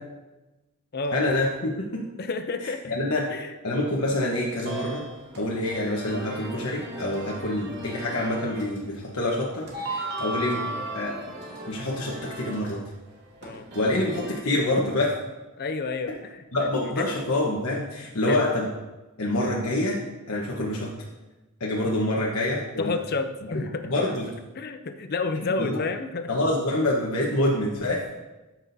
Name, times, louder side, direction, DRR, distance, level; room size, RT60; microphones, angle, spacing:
voice 1, 1.1-2.0 2.6-3.2 3.6-5.0 5.4-11.1 11.7-12.8 13.7-15.2 16.5-18.7 19.2-20.9 21.6-22.9 23.8-24.3 25.6-25.8 26.3-28.1, left 1 dB, 70° left, -4 dB, 1.2 m, -26 dB
voice 2, 2.2-3.0 3.3-3.6 10.2-10.5 13.4-13.7 15.6-16.4 18.3-18.4 22.8-23.9 24.5-26.3, left 3 dB, 45° left, 9 dB, 0.6 m, -30 dB
sound 1, 3.9-14.3, right 2 dB, 50° right, 2.2 m, -37 dB
13.5 x 6.0 x 2.7 m, 1.1 s
head